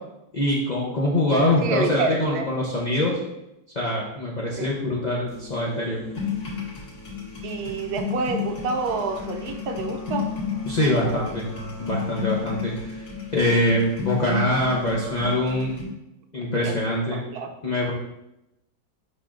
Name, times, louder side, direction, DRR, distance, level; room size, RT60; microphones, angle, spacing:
voice 1, 0.3-3.2 3.8-6.0 10.7-11.4 11.8-13.0 13.3-15.7 16.3-17.2 17.6-17.9, left 1 dB, 60° left, -4 dB, 0.4 m, -24 dB
voice 2, 1.6-2.5 4.6-4.7 7.4-10.3 16.6-16.8 17.1-17.5, right 4 dB, 70° right, 5 dB, 1.1 m, -28 dB
sound 1, 5.3-15.3, left 2 dB, 30° right, 2.0 m, -39 dB
sound 2, 6.2-15.9, left 8 dB, 45° left, 1.7 m, -33 dB
10.5 x 4.1 x 2.5 m, 0.89 s
omnidirectional pair, 2.0 m